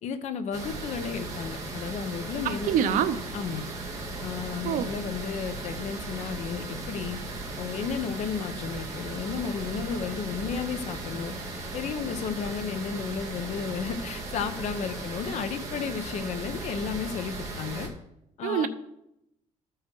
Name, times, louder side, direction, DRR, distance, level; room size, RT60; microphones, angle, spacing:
voice 1, 0.0-3.0 3.3-3.7 4.2-7.2 7.6-11.3 11.7-17.9 18.4-18.7, left 6 dB, 55° left, 9 dB, 0.9 m, -33 dB
sound 1, 0.5-17.9, right 2 dB, 25° right, 1.8 m, -37 dB
voice 2, 2.4-3.2 4.6-4.9 18.4-18.7, right 9 dB, 75° right, 11 dB, 0.7 m, -25 dB
13.5 x 4.8 x 4.6 m, 0.84 s
cardioid pair, 170°, 14 cm